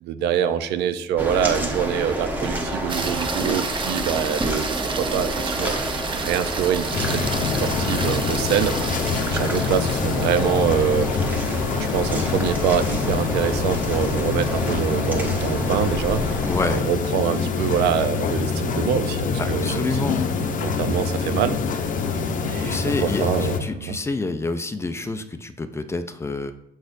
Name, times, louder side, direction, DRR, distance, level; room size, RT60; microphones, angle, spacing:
voice 1, 0.0-5.7 6.1-11.1 11.7-16.5 16.7-19.9 20.6-21.8 22.4-24.0, right 8 dB, 80° right, 11 dB, 0.5 m, -25 dB
sound 1, 1.2-16.8, right 1 dB, 10° right, 1.1 m, -29 dB
sound 2, 2.9-15.3 19.8-19.9, right 5 dB, 30° right, 0.6 m, -33 dB
sound 3, 6.9-23.6, left 5 dB, 50° left, 0.7 m, -25 dB
voice 2, 16.5-16.9 19.4-20.2 22.6-26.5, left 3 dB, 15° left, 9 dB, 0.4 m, -28 dB
6.2 x 6.2 x 2.6 m, 0.79 s
cardioid pair, 110°, 17 cm